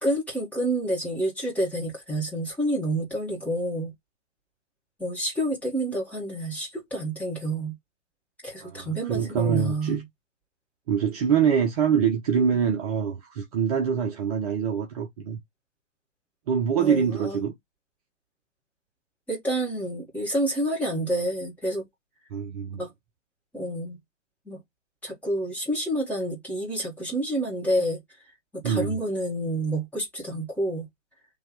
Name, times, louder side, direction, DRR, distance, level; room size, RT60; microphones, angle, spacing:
voice 1, 0.0-3.9 5.0-7.7 8.4-10.0 16.8-17.5 19.3-21.9 22.8-22.9 23.5-24.0 24.5-24.6 25.0-28.0 28.5-30.9, right 1 dB, 5° left, 1.8 m, -28 dB
voice 2, 8.6-10.0 10.9-15.4 16.5-17.5 22.3-22.8 28.6-29.0, right 7 dB, 30° right, 0.7 m, -25 dB
3.6 x 2.9 x 4.5 m
hypercardioid pair, 135°, 38 cm